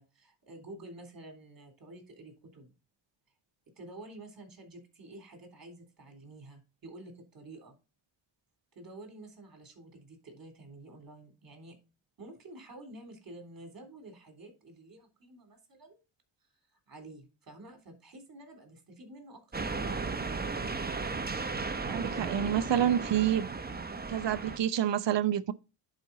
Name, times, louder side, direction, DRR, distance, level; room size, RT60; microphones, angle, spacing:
voice 1, 0.0-2.7 3.8-7.8 8.7-11.8 12.2-16.0 16.9-20.4, right 2 dB, 45° right, 3.6 m, -50 dB
sound 1, 19.5-24.6, right 4 dB, 20° right, 1.0 m, -35 dB
voice 2, 21.9-23.5 24.1-25.5, right 10 dB, 65° right, 0.8 m, -28 dB
10.5 x 5.0 x 4.2 m
cardioid pair, 75°, 47 cm